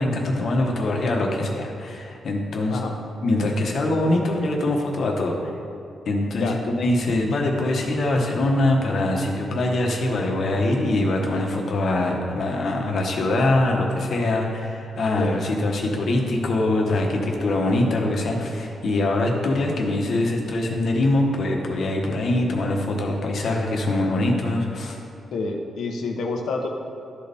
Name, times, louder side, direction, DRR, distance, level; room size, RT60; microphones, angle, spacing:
voice 1, 0.0-2.8 3.2-5.3 6.1-25.0, left 2 dB, 60° left, 0 dB, 1.2 m, -23 dB
voice 2, 25.3-26.7, left 3 dB, 80° left, 2 dB, 0.8 m, -28 dB
12.5 x 4.1 x 3.5 m, 2.6 s
cardioid pair, 100°, 0 cm